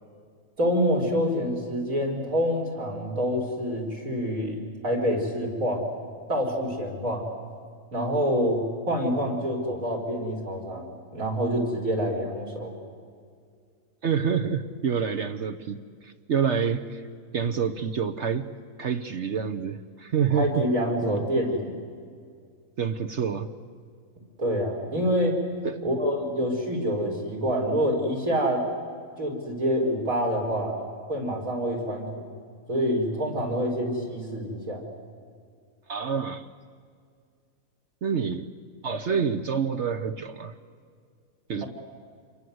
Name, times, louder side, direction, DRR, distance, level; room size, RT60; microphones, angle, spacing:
voice 1, 0.6-5.9 6.3-7.2 7.9-12.7 20.3-21.8 24.4-25.4 25.8-28.6 29.2-32.2 32.7-34.8, equal, 75° right, 0 dB, 4.9 m, -27 dB
voice 2, 14.0-15.8 16.0-17.0 17.3-18.5 18.8-20.7 21.0-21.2 22.8-23.5 25.6-25.8 35.9-36.5 38.0-38.5 38.8-40.5 41.5-41.6, right 6 dB, 55° right, 8 dB, 1.1 m, -27 dB
28.0 x 23.5 x 7.9 m, 2.2 s
omnidirectional pair, 1.5 m